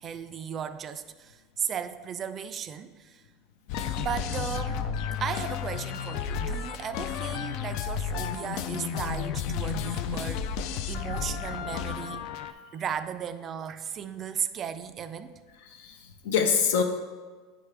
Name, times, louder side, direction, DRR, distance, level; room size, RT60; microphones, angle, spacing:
voice 1, 0.0-3.2 4.0-4.9 5.2-10.5 10.9-12.3 12.7-15.4, right 8 dB, 35° right, 11 dB, 0.3 m, -35 dB
sound 1, 3.7-12.5, left 7 dB, 60° left, 0.3 m, -32 dB
voice 2, 15.7-16.8, left 6 dB, 80° left, 5 dB, 0.7 m, -25 dB
9.4 x 3.5 x 3.3 m, 1.4 s
supercardioid pair, 120°, 0 cm